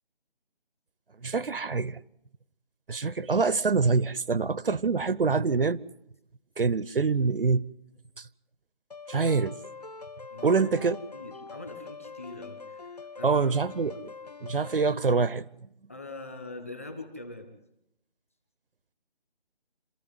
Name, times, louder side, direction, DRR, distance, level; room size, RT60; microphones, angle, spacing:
voice 1, 1.2-2.0 2.9-5.8 6.6-7.6 8.2-8.3 9.1-9.5 10.4-11.0 13.2-14.1 14.4-15.5, right 4 dB, 65° right, 0.8 m, -25 dB
sound 1, 8.9-14.8, left 4 dB, 40° left, 0.8 m, -44 dB
voice 2, 10.3-10.7 11.1-14.0 15.9-17.5, left 2 dB, 15° left, 1.2 m, -43 dB
27.5 x 14.0 x 9.6 m
figure-of-eight pair, 180°, 31 cm